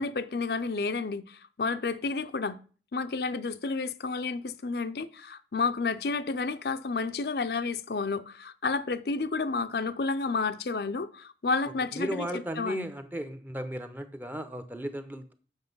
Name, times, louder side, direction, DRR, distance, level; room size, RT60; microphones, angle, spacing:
voice 1, 0.0-2.6 2.9-12.9, left 4 dB, 60° left, 0.5 m, -31 dB
voice 2, 11.9-15.3, equal, 10° right, 0.7 m, -35 dB
8.0 x 6.0 x 5.4 m
head